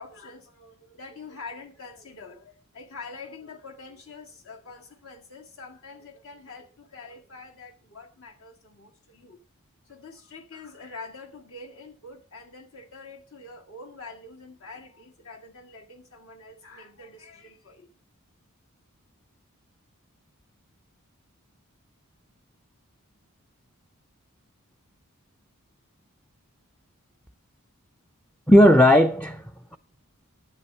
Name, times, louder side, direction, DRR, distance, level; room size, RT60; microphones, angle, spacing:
voice 1, 0.0-9.4 9.9-17.9, left 3 dB, 65° left, 2.0 m, -45 dB
voice 2, 28.5-29.8, equal, 5° left, 0.4 m, -16 dB
11.0 x 7.8 x 5.5 m
head